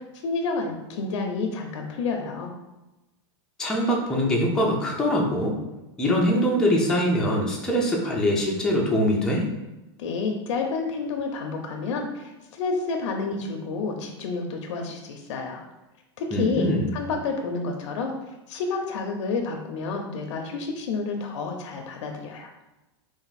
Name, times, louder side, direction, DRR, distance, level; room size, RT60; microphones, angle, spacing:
voice 1, 0.0-2.5 10.0-15.6 16.2-18.1 18.5-22.5, left 4 dB, 85° left, 2 dB, 0.6 m, -29 dB
voice 2, 3.6-5.5 6.0-9.4 16.3-16.9, equal, 5° left, -3 dB, 0.5 m, -23 dB
3.4 x 2.5 x 4.0 m, 1.0 s
supercardioid pair, 160°, 15 cm